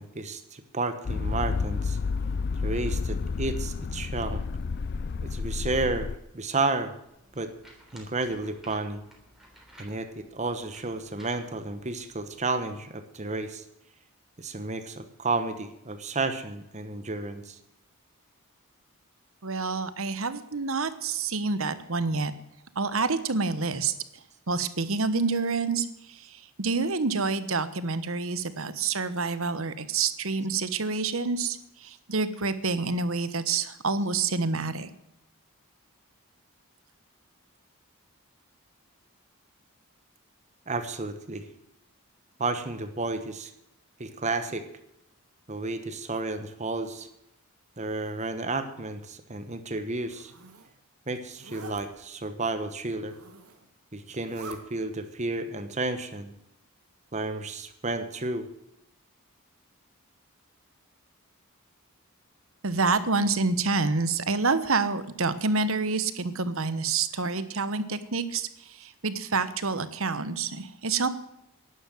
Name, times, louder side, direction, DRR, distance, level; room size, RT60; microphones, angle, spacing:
voice 1, 0.0-2.0 2.6-4.4 5.3-6.9 7.3-7.5 7.9-9.0 9.8-13.6 14.4-17.6 40.7-41.5 42.4-43.5 44.0-44.6 45.5-47.1 47.8-50.3 51.1-53.1 53.9-56.3 57.1-58.5, right 3 dB, 30° right, 9 dB, 1.1 m, -32 dB
sound 1, 1.1-6.2, left 4 dB, 45° left, 0.4 m, -30 dB
sound 2, 7.0-12.4, equal, ahead, 3.5 m, -55 dB
voice 2, 19.4-22.3 22.7-23.9 24.5-34.9 62.6-71.1, right 4 dB, 65° right, 13 dB, 1.2 m, -28 dB
Zipper (clothing), 49.9-50.7 51.3-51.8 52.9-53.7 54.1-54.6, right 4 dB, 80° right, 2.1 m, -46 dB
11.5 x 11.0 x 7.7 m, 0.82 s
head